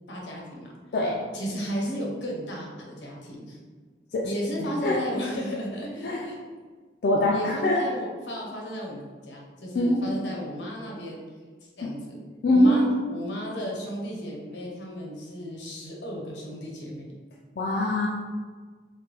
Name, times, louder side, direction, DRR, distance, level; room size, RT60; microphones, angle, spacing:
voice 1, 0.1-0.7 1.3-3.6 4.2-6.4 7.3-11.2 11.8-12.2 12.5-17.2, equal, 85° left, -2 dB, 0.8 m, -34 dB
voice 2, 7.0-7.8 9.7-10.0 12.4-12.9 17.6-18.1, left 1 dB, 60° left, -3 dB, 0.3 m, -22 dB
3.2 x 2.1 x 3.3 m, 1.5 s
head